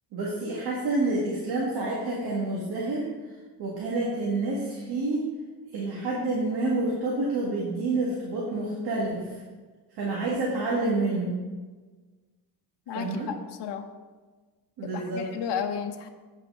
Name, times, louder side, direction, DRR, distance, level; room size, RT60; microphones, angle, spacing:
voice 1, 0.1-3.1 3.6-5.2 5.7-9.4 10.0-11.4 12.9-13.3 14.8-15.3, right 2 dB, 65° right, -4 dB, 1.8 m, -28 dB
voice 2, 12.9-13.9 14.8-16.1, left 7 dB, 85° left, 5 dB, 0.9 m, -33 dB
8.6 x 5.9 x 5.4 m, 1.3 s
cardioid pair, 175°, 41 cm